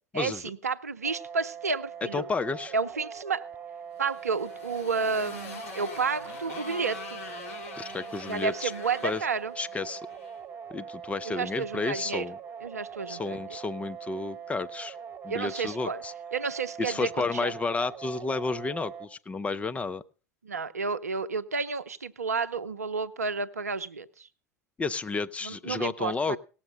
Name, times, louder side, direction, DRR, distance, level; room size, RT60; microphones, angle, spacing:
voice 1, 0.1-2.3 2.7-3.4 4.0-7.2 8.3-9.5 11.2-12.2 12.6-13.4 15.3-16.0 16.3-17.5 20.4-24.3 25.4-26.4, right 4 dB, 80° right, 12 dB, 0.6 m, -31 dB
sound 1, 1.0-19.1, right 7 dB, 25° right, 2.0 m, -42 dB
voice 2, 2.1-2.7 7.8-8.7 9.0-9.2 9.6-10.0 10.7-12.4 13.1-15.0 15.2-16.1 16.8-20.0 24.8-26.4, left 4 dB, 15° left, 12 dB, 0.6 m, -31 dB
Motorcycle, 3.9-10.4, left 4 dB, 60° left, 3.0 m, -44 dB
18.0 x 7.3 x 5.2 m, 0.37 s
figure-of-eight pair, 80°, 8 cm